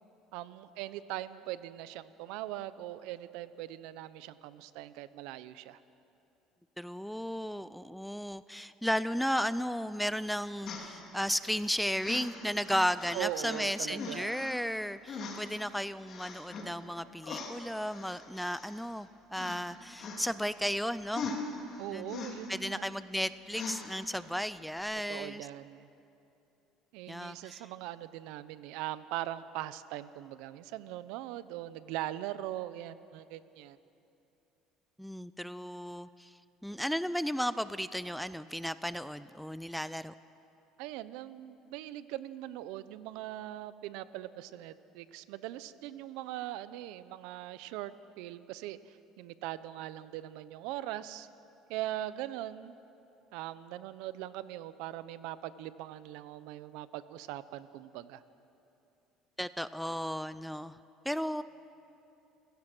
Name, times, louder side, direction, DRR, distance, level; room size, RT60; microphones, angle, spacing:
voice 1, 0.3-5.8 13.1-14.3 21.8-22.9 25.1-25.9 26.9-33.8 40.8-47.9 48.2-51.3 51.7-52.8 53.3-58.2, right 14 dB, 80° right, 15 dB, 0.8 m, -41 dB
voice 2, 6.8-21.3 21.9-22.2 22.5-25.5 27.1-27.7 35.0-40.1 59.4-60.8 61.0-61.4, equal, ahead, 15 dB, 0.4 m, -34 dB
sound 1, 10.6-11.6 12.0-13.7 13.9-14.6 15.1-15.6 16.1-16.7 17.2-19.0 19.3-19.6 20.0-20.6 21.1-22.8 23.5-24.2 24.8-24.9, left 4 dB, 45° left, 3.1 m, -42 dB
29.5 x 16.5 x 6.2 m, 2.8 s
cardioid pair, 130°, 0 cm